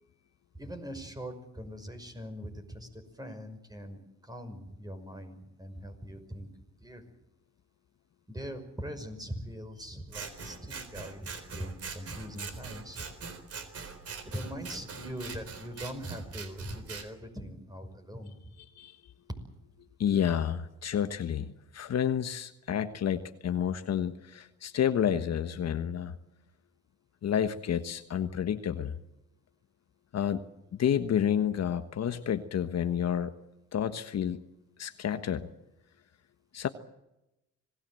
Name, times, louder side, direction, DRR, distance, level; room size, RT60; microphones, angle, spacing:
voice 1, 0.5-6.5 6.8-7.0 8.3-13.1 14.2-18.5, equal, 15° right, 7 dB, 5.7 m, -41 dB
Scissors, 10.1-17.1, right 5 dB, 50° right, 3.9 m, -42 dB
voice 2, 20.0-26.2 27.2-29.0 30.1-30.4 30.7-33.4 33.7-34.4 34.8-35.5 36.5-36.7, left 9 dB, 60° left, 9 dB, 1.3 m, -30 dB
26.0 x 18.5 x 7.8 m, 0.91 s
cardioid pair, 90°, 30 cm